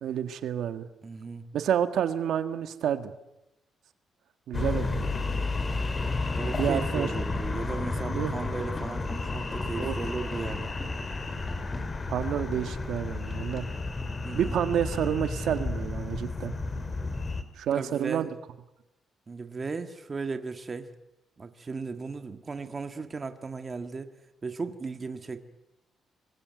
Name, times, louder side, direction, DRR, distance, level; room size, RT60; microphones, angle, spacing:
voice 1, 0.0-0.9 1.5-3.1 4.5-5.0 6.5-7.1 8.1-8.3 9.8-9.9 12.1-13.7 14.3-16.5 17.6-18.3, right 9 dB, 75° right, 9 dB, 1.7 m, -29 dB
voice 2, 1.0-1.5 6.3-10.7 14.2-14.5 17.7-18.3 19.3-20.9 21.4-24.1 24.4-25.4, right 4 dB, 25° right, 8 dB, 1.7 m, -36 dB
sound 1, 4.5-17.4, left 3 dB, 25° left, 2.5 m, -32 dB
26.5 x 22.0 x 9.4 m, 0.94 s
cardioid pair, 145°, 0 cm